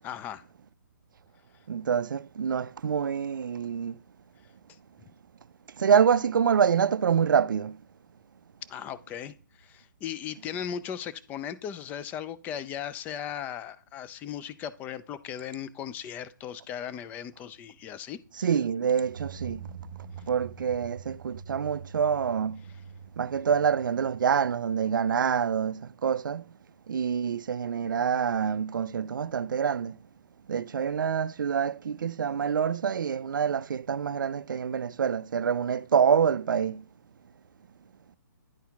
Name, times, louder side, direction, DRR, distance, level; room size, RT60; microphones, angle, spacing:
voice 1, 0.0-0.4 8.7-18.5, left 9 dB, 15° left, 0.4 m, -37 dB
voice 2, 1.7-4.0 5.8-7.8 18.4-19.6 20.3-22.6 23.2-26.4 26.9-30.0 30.5-36.8, right 7 dB, 75° right, 0.4 m, -26 dB
sound 1, 19.0-25.6, right 6 dB, 40° right, 1.2 m, -44 dB
10.5 x 4.3 x 3.5 m
hypercardioid pair, 140°, 11 cm